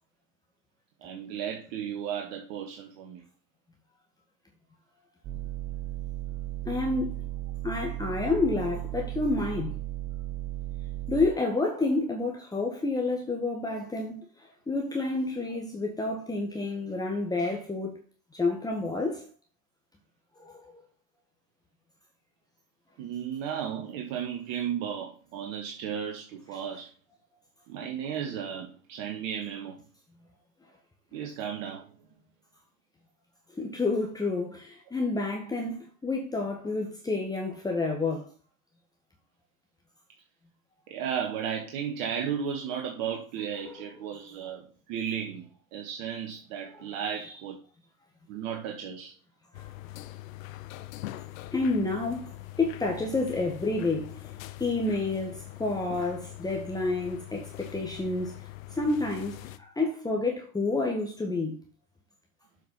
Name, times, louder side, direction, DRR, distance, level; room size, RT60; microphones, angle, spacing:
voice 1, 1.0-3.2 23.0-26.9 27.7-29.8 31.1-31.9 40.9-45.5 45.7-47.6 48.3-49.1, right 8 dB, 55° right, 1.9 m, -34 dB
sound 1, 5.2-11.3, right 15 dB, 35° right, 0.8 m, -35 dB
voice 2, 6.6-7.2 7.6-9.8 11.1-18.0 18.3-19.3 20.4-20.7 26.5-26.6 33.6-38.3 43.5-43.7 46.7-46.9 47.2-47.3 49.5-49.7 51.5-54.2 54.6-58.3 58.7-61.6, left 3 dB, 10° left, 1.5 m, -29 dB
sound 2, 49.5-59.6, left 16 dB, 65° left, 0.9 m, -43 dB
7.7 x 5.3 x 5.7 m
hypercardioid pair, 100°, 43 cm